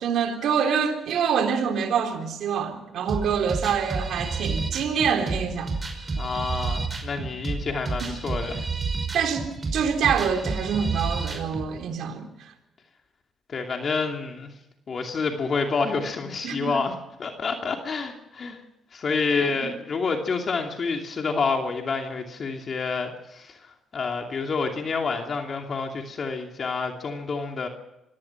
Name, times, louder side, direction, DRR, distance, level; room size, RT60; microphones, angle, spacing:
voice 1, 0.0-5.7 8.0-8.1 9.1-12.5 16.4-16.8 19.4-19.7, right 7 dB, 75° right, 3.5 m, -26 dB
sound 1, 3.1-11.7, right 3 dB, 30° right, 5.4 m, -30 dB
voice 2, 6.1-8.7 13.5-14.5 14.9-18.6 18.9-27.7, left 4 dB, 45° left, 2.7 m, -28 dB
25.5 x 17.0 x 6.0 m
cardioid pair, 90°, 0 cm